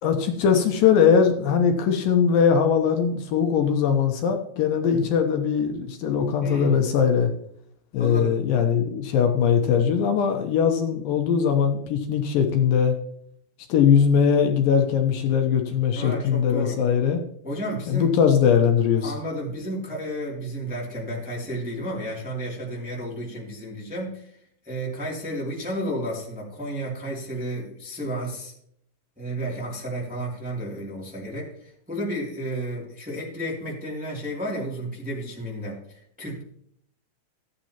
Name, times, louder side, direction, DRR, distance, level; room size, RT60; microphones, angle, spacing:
voice 1, 0.0-7.3 7.9-12.9 13.7-17.2 17.9-19.1, left 7 dB, 75° left, 5 dB, 2.5 m, -21 dB
voice 2, 6.4-6.8 8.0-8.4 15.9-16.8 17.4-18.1 19.0-24.4 24.6-28.5 29.2-36.4, right 1 dB, 5° right, -3 dB, 1.8 m, -32 dB
14.5 x 9.2 x 2.9 m, 0.68 s
omnidirectional pair, 4.3 m